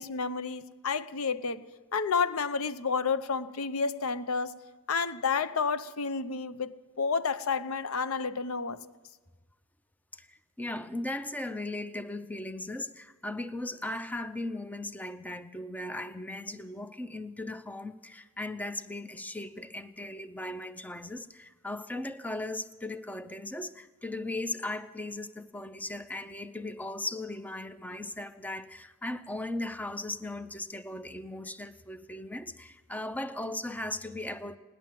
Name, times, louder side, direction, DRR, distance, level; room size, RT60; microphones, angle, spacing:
voice 1, 0.0-1.6 1.9-4.5 4.9-8.8, left 5 dB, 75° left, 0.6 m, -30 dB
voice 2, 10.1-34.6, left 2 dB, 5° left, 0.5 m, -37 dB
18.5 x 10.5 x 7.5 m
head